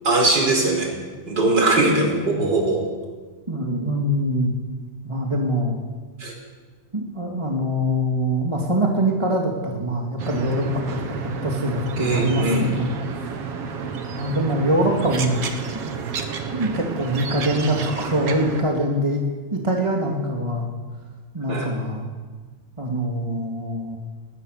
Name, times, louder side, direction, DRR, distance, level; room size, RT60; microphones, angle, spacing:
voice 1, 0.0-0.9 1.3-2.8 6.2-6.3 12.0-12.7 21.5-21.7, right 2 dB, 35° right, 1 dB, 5.1 m, -20 dB
voice 2, 3.5-4.5 5.0-5.8 6.9-13.3 14.1-15.5 16.5-19.2 19.5-20.7 21.3-22.1 22.8-24.0, equal, 10° right, 0 dB, 2.0 m, -23 dB
sound 1, 10.2-18.6, right 6 dB, 55° right, 2.4 m, -31 dB
20.5 x 20.0 x 6.7 m, 1.4 s
omnidirectional pair, 3.3 m